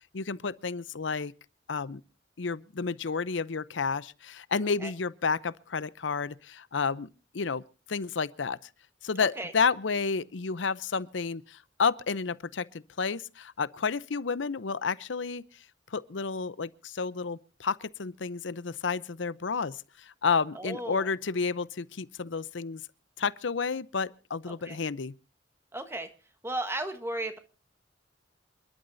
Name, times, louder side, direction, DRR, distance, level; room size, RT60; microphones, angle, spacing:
voice 1, 0.1-1.3 1.7-2.0 2.4-7.1 7.3-7.6 7.9-8.6 9.0-15.4 15.9-19.8 20.2-22.8 23.2-25.1, left 5 dB, 75° left, 0.7 m, -31 dB
voice 2, 9.2-9.5 20.5-21.1 24.5-24.8 25.7-26.1 26.4-27.4, right 1 dB, 15° right, 1.3 m, -35 dB
28.0 x 12.0 x 2.7 m
head